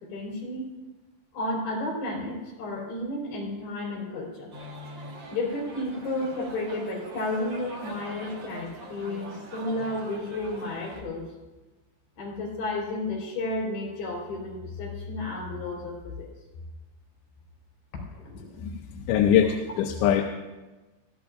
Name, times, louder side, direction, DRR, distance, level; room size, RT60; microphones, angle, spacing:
voice 1, 0.0-0.7 1.3-4.5 5.3-11.3 12.2-16.3 18.1-18.6, left 2 dB, 65° left, -2 dB, 5.7 m, -32 dB
sound 1, 4.5-11.0, right 1 dB, 65° right, 1.1 m, -42 dB
voice 2, 18.6-20.2, left 9 dB, 90° left, 3 dB, 3.1 m, -23 dB
20.5 x 15.0 x 2.6 m, 1.1 s
omnidirectional pair, 5.2 m